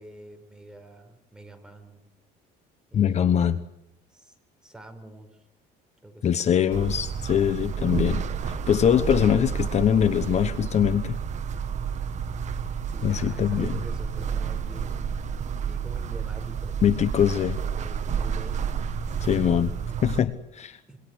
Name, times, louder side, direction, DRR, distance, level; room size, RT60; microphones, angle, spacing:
voice 1, 0.0-2.1 2.9-3.6 4.1-5.4 6.0-7.0 12.9-15.2 15.6-17.1 17.7-19.4 20.9-21.0, right 1 dB, 5° right, 5 dB, 4.6 m, -46 dB
voice 2, 2.9-3.6 6.2-8.2 8.7-11.2 13.0-13.8 16.8-17.6 19.2-19.7 20.0-20.8, left 9 dB, 40° left, 12 dB, 1.0 m, -22 dB
sound 1, 6.7-20.2, right 7 dB, 40° right, 1.7 m, -30 dB
26.5 x 23.0 x 8.0 m, 0.81 s
cardioid pair, 140°, 18 cm